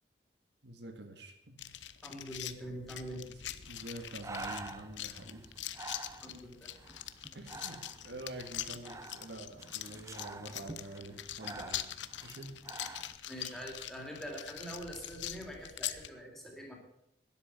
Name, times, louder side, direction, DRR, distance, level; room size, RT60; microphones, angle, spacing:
voice 1, 0.6-1.7 3.3-5.5 6.4-6.5 7.3-11.9 12.2-12.6, right 1 dB, 75° right, 7 dB, 1.7 m, -47 dB
sound 1, 1.6-16.1, left 12 dB, 90° left, 0.8 m, -43 dB
voice 2, 2.0-3.2 6.2-6.7 13.3-16.8, equal, ahead, 0 dB, 3.4 m, -44 dB
Breathing, 3.7-13.2, right 2 dB, 15° right, 0.7 m, -48 dB
12.5 x 10.5 x 8.2 m, 0.76 s
head